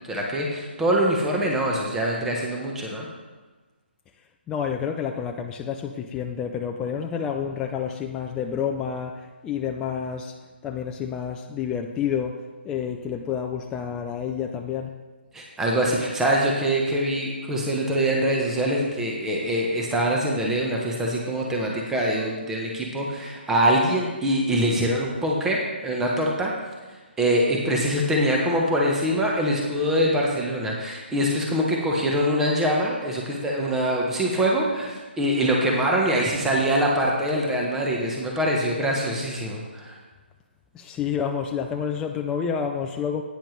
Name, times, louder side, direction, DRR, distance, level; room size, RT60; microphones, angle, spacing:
voice 1, 0.0-3.1 15.3-26.5 27.2-39.9, right 1 dB, 5° right, -2 dB, 1.0 m, -24 dB
voice 2, 4.5-10.3 10.6-14.9 40.7-43.2, left 7 dB, 10° left, 3 dB, 0.3 m, -29 dB
10.0 x 9.1 x 3.2 m, 1.3 s
hypercardioid pair, 155°, 6 cm